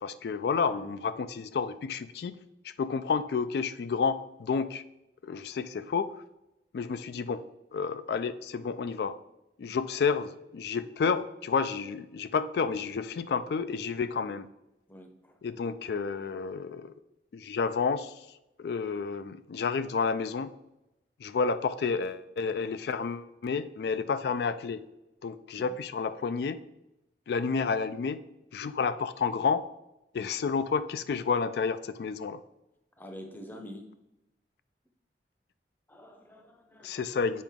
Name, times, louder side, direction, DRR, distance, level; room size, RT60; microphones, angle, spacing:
voice 1, 0.0-2.4 2.6-4.8 5.2-6.1 6.7-7.4 7.7-9.2 9.6-14.5 15.4-16.9 17.3-18.3 18.6-20.5 21.2-24.8 25.2-26.6 27.3-28.2 28.5-29.6 30.1-32.4 36.8-37.4, left 5 dB, 65° left, 13 dB, 0.3 m, -30 dB
voice 2, 14.9-15.3 25.6-25.7 33.0-33.9 35.9-37.0, equal, 10° left, 4 dB, 0.6 m, -46 dB
7.4 x 5.0 x 3.5 m, 0.92 s
head